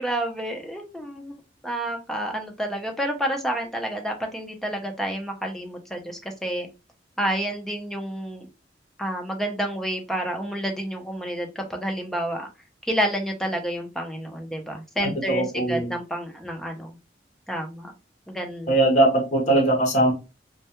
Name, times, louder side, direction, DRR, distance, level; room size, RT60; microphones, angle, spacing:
voice 1, 0.0-1.3 1.6-6.7 7.2-8.5 9.0-12.5 12.8-17.0 17.5-17.9 18.3-18.8, right 1 dB, ahead, 2 dB, 0.4 m, -29 dB
voice 2, 15.3-15.9 18.7-20.1, right 1 dB, 40° left, 1 dB, 0.7 m, -20 dB
2.2 x 2.1 x 2.8 m, 0.28 s
head